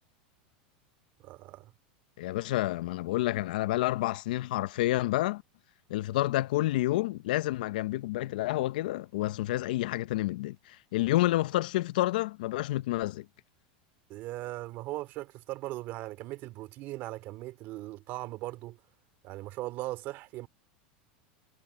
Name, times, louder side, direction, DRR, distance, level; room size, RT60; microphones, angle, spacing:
voice 1, 1.2-1.7 14.1-18.8 19.2-20.5, right 17 dB, 45° right, 2.5 m, -39 dB
voice 2, 2.2-5.4 5.9-13.3, left 16 dB, 75° left, 0.7 m, -29 dB
supercardioid pair, 140°, 5 cm